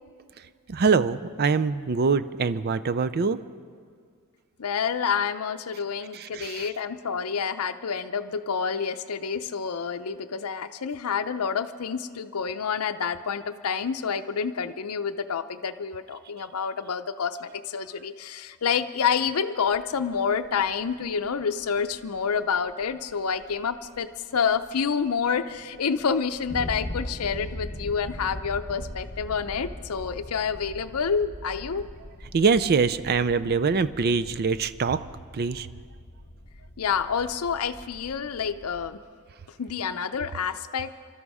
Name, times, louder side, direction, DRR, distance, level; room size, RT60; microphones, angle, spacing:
voice 1, 0.7-3.4 6.1-6.7 32.3-35.0 35.3-35.7, right 5 dB, 45° right, 13 dB, 0.4 m, -24 dB
voice 2, 4.6-31.9 36.8-39.0 39.6-40.9, left 6 dB, 75° left, 8 dB, 0.6 m, -28 dB
sound 1, 19.7-39.0, left 1 dB, 40° left, 1.2 m, -41 dB
23.0 x 13.0 x 4.9 m, 2.1 s
head